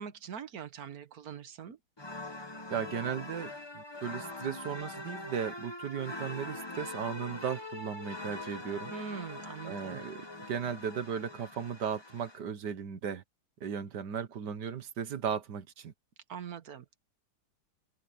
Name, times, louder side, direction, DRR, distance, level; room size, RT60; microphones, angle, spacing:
voice 1, 0.0-1.8 8.9-10.0 16.3-17.0, right 7 dB, 65° right, 1.6 m, -43 dB
sound 1, 2.0-12.4, left 2 dB, 15° left, 1.4 m, -43 dB
voice 2, 2.7-8.9 9.6-10.2 10.5-13.2 13.6-15.9, right 7 dB, 80° right, 1.8 m, -36 dB
omnidirectional pair, 1.8 m